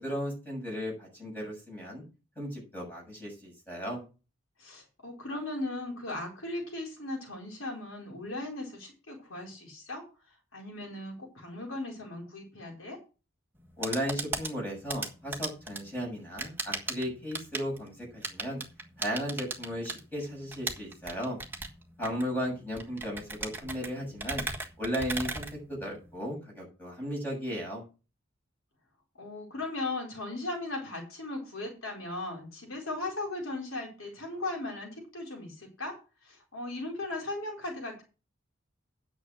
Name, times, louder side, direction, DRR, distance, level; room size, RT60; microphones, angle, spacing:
voice 1, 0.0-2.0 2.4-4.0 13.8-18.6 19.0-21.4 22.0-24.4 24.8-27.8, equal, 10° left, -2 dB, 7.3 m, -35 dB
voice 2, 4.6-13.0 29.2-36.0 36.2-38.0, left 2 dB, 80° left, 0 dB, 4.4 m, -37 dB
sound 1, 13.6-26.2, right 3 dB, 10° right, 1.5 m, -38 dB
9.7 x 6.9 x 6.2 m, 0.32 s
head